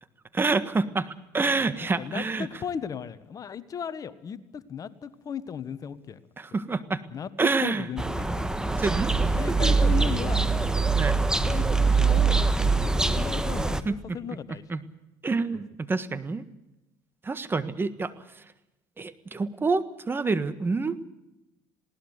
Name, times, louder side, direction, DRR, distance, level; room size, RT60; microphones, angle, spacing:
voice 1, 0.3-2.5 6.4-7.0 7.4-7.9 8.8-9.1 9.5-9.7 10.9-11.2 13.8-14.0 14.7-14.8 15.2-16.4 17.2-18.4 19.0-21.0, right 3 dB, 25° right, 13 dB, 1.5 m, -27 dB
voice 2, 1.7-6.2 7.1-8.3 9.4-10.5 11.4-12.4 12.7-14.6, left 7 dB, 40° left, 14 dB, 1.3 m, -36 dB
sound 1, 8.0-13.8, right 4 dB, 5° right, 1.5 m, -23 dB
20.0 x 18.5 x 8.1 m, 0.95 s
supercardioid pair, 80°, 9 cm